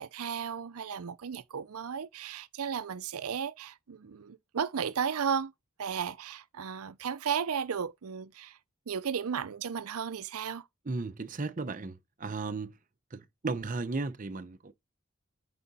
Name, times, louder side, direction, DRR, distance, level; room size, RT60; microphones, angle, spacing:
voice 1, 0.0-5.5 5.8-8.6 8.9-10.7, right 7 dB, 85° right, 0.5 m, -34 dB
voice 2, 10.9-12.7 13.1-14.7, right 3 dB, 35° right, 0.6 m, -35 dB
8.4 x 3.8 x 4.0 m
head